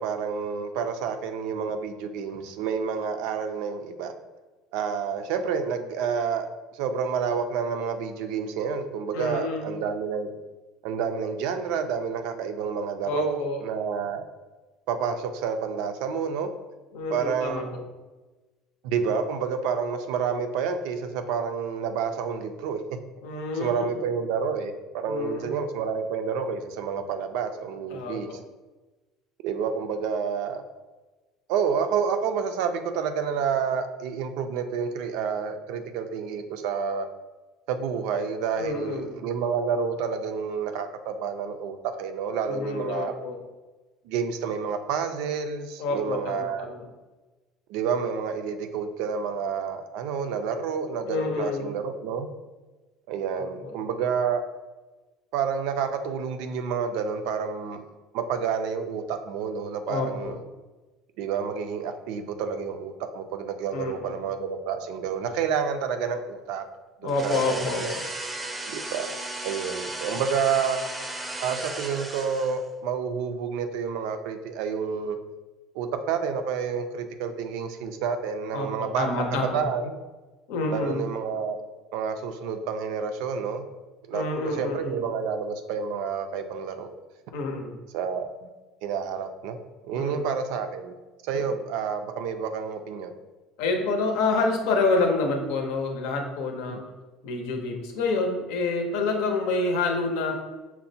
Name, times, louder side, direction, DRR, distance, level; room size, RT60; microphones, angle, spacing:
voice 1, 0.0-4.1 4.7-6.5 6.7-10.3 10.8-14.2 14.9-16.5 17.1-17.9 18.8-22.8 23.5-28.4 29.4-30.6 31.5-37.1 37.7-43.1 44.0-46.7 47.7-52.3 53.1-54.4 55.3-57.8 58.1-60.4 61.2-66.7 67.0-68.0 68.7-70.8 71.4-75.2 75.7-80.0 80.7-81.6 81.9-83.6 84.1-86.9 87.9-88.5 88.8-89.6 89.8-90.9 91.2-93.1 96.7-96.8, right 6 dB, 75° right, 8 dB, 0.4 m, -29 dB
voice 2, 9.1-9.8 13.0-13.6 16.9-17.6 23.2-23.9 25.0-25.6 27.9-28.4 38.6-39.2 42.4-43.4 45.8-46.9 51.1-51.7 53.3-53.7 59.9-60.4 63.7-64.1 67.0-68.0 70.1-70.2 78.5-79.6 80.5-81.0 84.1-85.0 87.3-87.8 89.9-90.2 91.3-91.4 93.6-96.8 97.2-100.3, left 3 dB, 80° left, 3 dB, 0.6 m, -28 dB
sound 1, 67.1-72.7, right 2 dB, 15° right, 0.5 m, -35 dB
5.7 x 2.1 x 2.7 m, 1.2 s
supercardioid pair, 115°, 0 cm